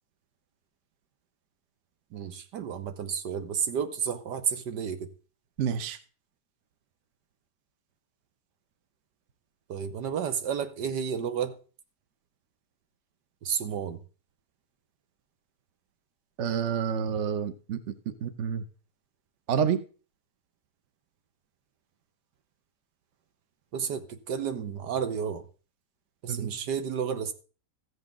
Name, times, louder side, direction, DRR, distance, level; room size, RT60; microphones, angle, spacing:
voice 1, 2.1-5.1 9.7-11.6 13.4-14.0 23.7-25.4 26.2-27.3, right 7 dB, 80° right, 1.6 m, -31 dB
voice 2, 5.6-6.0 16.4-17.8 18.2-18.6 19.5-19.8 26.3-26.5, right 7 dB, 50° right, 1.1 m, -28 dB
14.5 x 8.1 x 3.7 m
omnidirectional pair, 1.8 m